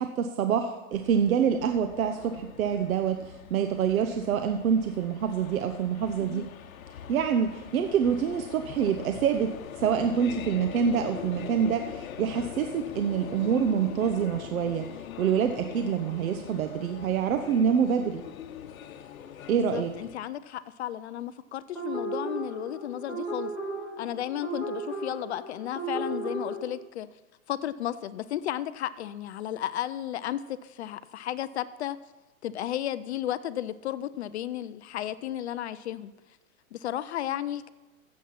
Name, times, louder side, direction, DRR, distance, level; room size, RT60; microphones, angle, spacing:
voice 1, 0.0-6.5 7.1-9.5 9.8-14.9 15.2-18.2 19.5-19.9, right 7 dB, 75° right, 7 dB, 1.1 m, -26 dB
sound 1, 0.9-20.2, left 9 dB, 75° left, 1.1 m, -42 dB
voice 2, 19.7-23.5 24.0-27.1 27.5-32.0 32.4-36.1 36.7-37.7, left 12 dB, 50° left, 15 dB, 0.5 m, -33 dB
sound 2, 21.7-26.6, right 2 dB, ahead, 5.0 m, -35 dB
15.5 x 7.5 x 5.8 m, 1.1 s
hypercardioid pair, 150°, 42 cm